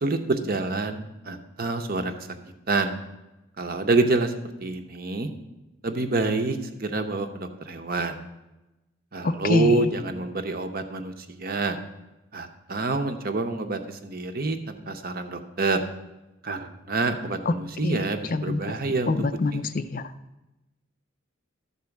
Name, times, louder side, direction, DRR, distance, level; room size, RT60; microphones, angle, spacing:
voice 1, 0.0-2.3 2.7-2.9 3.6-4.3 4.6-5.3 5.8-8.2 9.1-11.1 11.4-11.8 12.3-15.8 16.4-19.1 19.5-19.6, right 3 dB, 45° right, 7 dB, 0.8 m, -27 dB
voice 2, 9.2-9.9 17.5-17.6 17.8-18.1 18.3-18.6 19.1-20.0, left 3 dB, 40° left, 11 dB, 0.4 m, -25 dB
12.5 x 4.3 x 7.1 m, 1.0 s
head